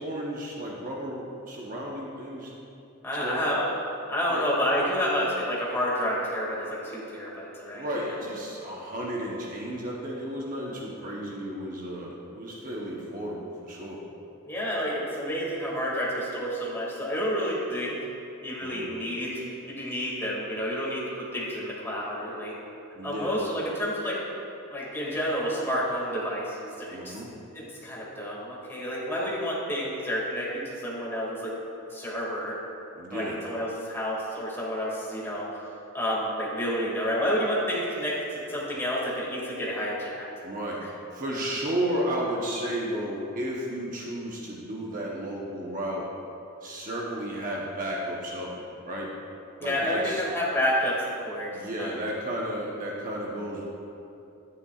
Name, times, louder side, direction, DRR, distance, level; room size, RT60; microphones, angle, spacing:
voice 1, 0.0-2.5 3.1-3.5 4.3-4.5 7.7-14.0 18.6-18.9 22.9-23.3 26.9-27.3 33.0-33.4 40.4-40.8 41.1-46.1 46.6-49.1 49.6-50.2 51.5-53.7, right 1 dB, 40° right, -3 dB, 0.9 m, -33 dB
voice 2, 3.0-3.7 4.1-8.0 14.5-18.0 18.4-22.5 23.0-24.2 24.7-27.2 27.5-31.5 31.9-32.5 33.1-35.5 35.9-40.2 49.6-51.5 51.8-52.0, equal, 10° left, -6 dB, 2.1 m, -29 dB
11.5 x 9.6 x 2.4 m, 2.8 s
head